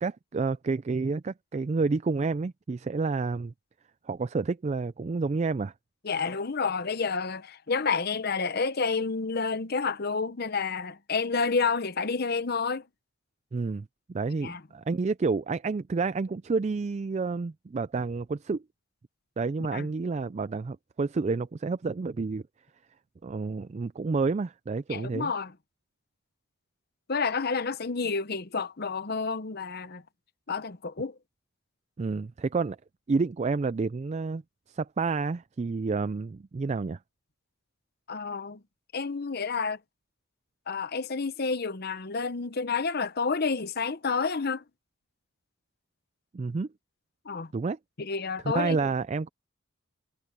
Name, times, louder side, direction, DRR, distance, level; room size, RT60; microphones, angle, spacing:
voice 1, 0.0-3.5 4.0-5.7 13.5-18.6 19.4-22.4 23.2-25.3 32.0-32.8 33.1-34.4 34.7-37.0 46.3-46.7 47.5-47.8 48.5-49.3, right 4 dB, 30° right, 0.3 m, -29 dB
voice 2, 6.0-12.9 14.4-14.6 19.7-19.9 24.9-25.5 27.1-30.0 30.5-31.2 38.1-38.6 38.9-39.8 40.7-44.6 47.2-47.5 48.0-48.9, left 4 dB, 50° left, 0.8 m, -29 dB
head